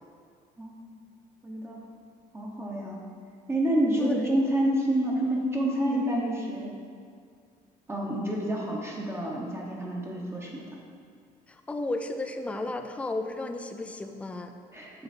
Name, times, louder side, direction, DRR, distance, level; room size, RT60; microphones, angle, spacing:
voice 1, 0.6-1.0 1.4-1.8 2.3-3.0 3.5-6.7 7.9-10.6 14.7-15.0, right 1 dB, 15° right, -3 dB, 0.9 m, -28 dB
voice 2, 11.5-14.6, left 2 dB, 5° left, 6 dB, 0.3 m, -33 dB
6.8 x 3.9 x 4.2 m, 2.1 s
cardioid pair, 110°, 17 cm